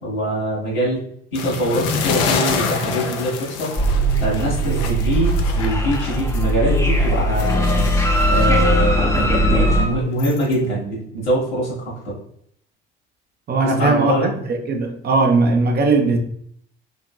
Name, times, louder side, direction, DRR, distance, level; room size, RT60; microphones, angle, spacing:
voice 1, 0.0-1.0 1.3-3.7 4.2-7.8 8.3-12.1 13.6-14.3, equal, 75° left, 1.4 m, -23 dB
sound 1, 1.3-6.5 6.9-10.5, left 5 dB, 55° left, 0.6 m, -28 dB
sound 2, 3.8-9.9, right 1 dB, 10° left, 0.6 m, -19 dB
voice 2, 13.5-16.2, right 3 dB, 35° right, 0.7 m, -18 dB
3.7 x 2.9 x 2.3 m
figure-of-eight pair, 55°, 30 cm